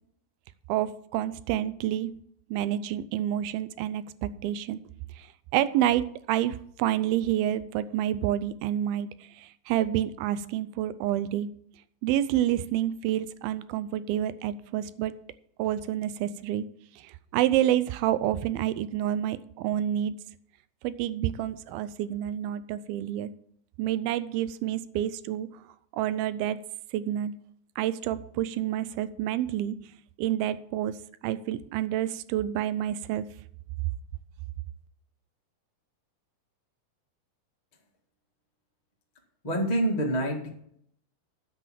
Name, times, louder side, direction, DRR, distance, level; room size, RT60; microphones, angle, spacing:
voice 1, 0.7-2.1 2.5-4.8 5.2-5.3 5.5-9.1 9.4-11.5 12.0-15.1 15.6-16.6 17.0-20.1 20.8-23.3 23.8-25.5 25.9-26.6 26.9-27.3 27.8-29.8 30.2-31.0 31.2-33.3, right 12 dB, 90° right, 15 dB, 2.5 m, -28 dB
voice 2, 39.4-40.5, right 1 dB, 35° left, -1 dB, 0.6 m, -26 dB
9.8 x 6.2 x 7.4 m, 0.67 s
omnidirectional pair, 4.2 m